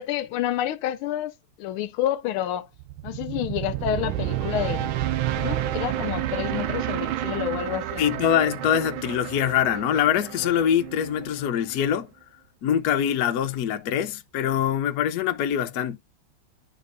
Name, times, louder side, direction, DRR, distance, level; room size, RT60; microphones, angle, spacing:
voice 1, 0.0-1.3 1.6-2.7 3.0-4.9 5.3-8.1, left 11 dB, 85° left, 1.5 m, -29 dB
sound 1, 2.8-11.9, right 12 dB, 75° right, 1.4 m, -30 dB
voice 2, 8.0-12.1 12.6-16.0, left 9 dB, 65° left, 1.0 m, -24 dB
11.0 x 4.1 x 2.5 m
omnidirectional pair, 2.3 m